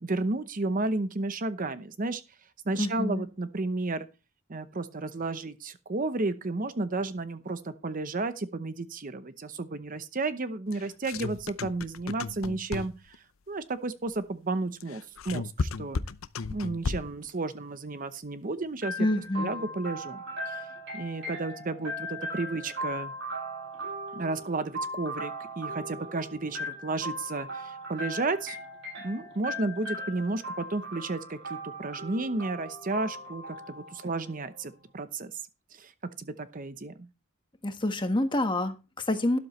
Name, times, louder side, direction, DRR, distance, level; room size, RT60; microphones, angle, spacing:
voice 1, 0.0-2.2 2.6-4.1 4.5-16.0 16.5-19.1 19.4-20.7 20.9-23.1 24.1-28.6 29.0-35.3 35.7-35.9 36.2-37.1, right 2 dB, 40° right, 12 dB, 0.8 m, -32 dB
voice 2, 2.8-3.3 19.0-19.7 37.6-39.4, left 1 dB, 25° left, 7 dB, 1.4 m, -28 dB
sound 1, 10.7-13.2 14.8-17.3, left 4 dB, 75° left, 0.7 m, -34 dB
sound 2, 18.8-34.6, equal, 60° right, 6.4 m, -38 dB
12.5 x 12.0 x 3.2 m, 0.29 s
head